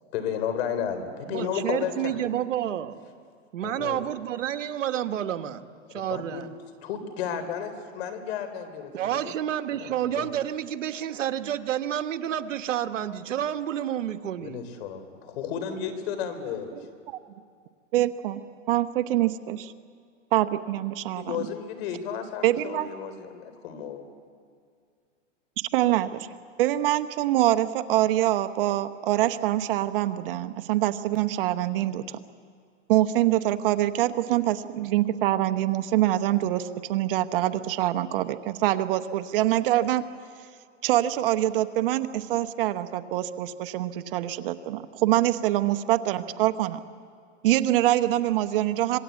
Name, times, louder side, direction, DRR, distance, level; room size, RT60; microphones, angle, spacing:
voice 1, 0.0-2.2 3.6-4.0 6.1-6.4 6.8-8.9 9.2-9.3 9.8-10.3 14.4-16.7 21.1-24.0, left 8 dB, 55° left, 10 dB, 3.7 m, -33 dB
voice 2, 1.3-3.0 3.5-5.6 5.9-6.5 8.9-14.6, right 10 dB, 80° right, 9 dB, 1.4 m, -29 dB
voice 3, 17.9-19.7 20.3-21.5 22.4-22.9 25.6-26.3 26.6-32.1 32.9-40.0 40.8-46.8 47.4-49.0, right 14 dB, 45° right, 9 dB, 1.0 m, -25 dB
26.0 x 21.5 x 8.4 m, 2.2 s
hypercardioid pair, 145°, 38 cm